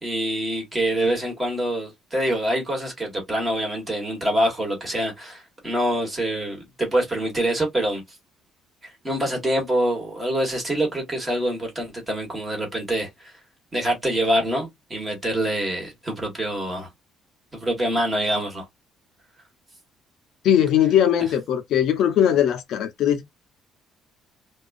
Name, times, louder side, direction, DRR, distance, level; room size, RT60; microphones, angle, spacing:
voice 1, 0.0-8.0 9.0-13.3 13.7-16.9 17.5-18.6, right 1 dB, 15° right, 1.3 m, -25 dB
voice 2, 20.4-23.2, left 10 dB, 60° left, 0.5 m, -20 dB
2.4 x 2.3 x 2.5 m
cardioid pair, 150°, 0 cm